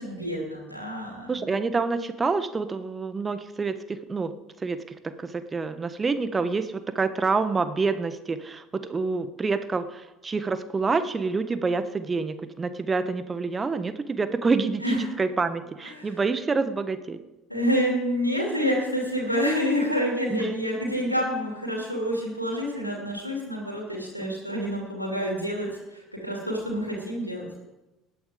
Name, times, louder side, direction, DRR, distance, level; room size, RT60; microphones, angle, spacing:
voice 1, 0.0-1.4 14.8-15.0 15.8-16.1 17.5-27.5, equal, 90° left, -1 dB, 2.8 m, -28 dB
voice 2, 1.3-4.3 4.6-8.6 8.9-17.2 20.3-20.5 24.2-24.4, right 4 dB, 20° right, 12 dB, 1.2 m, -27 dB
18.0 x 11.0 x 5.1 m, 1.0 s
figure-of-eight pair, 60°, 0 cm